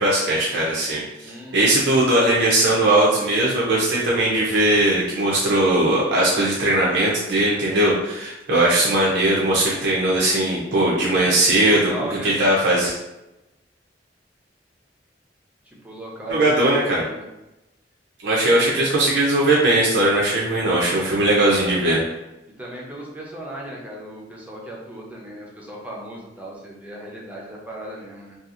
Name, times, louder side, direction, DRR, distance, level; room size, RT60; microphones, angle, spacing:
voice 1, 0.0-11.8 12.2-13.0 16.3-17.0 18.2-22.0, right 1 dB, 75° right, -5 dB, 0.5 m, -19 dB
voice 2, 1.2-1.8 10.8-11.3 11.6-12.4 15.6-17.3 18.4-18.7 22.6-28.4, right 1 dB, 10° right, -3 dB, 0.5 m, -36 dB
2.7 x 2.3 x 2.4 m, 0.98 s
head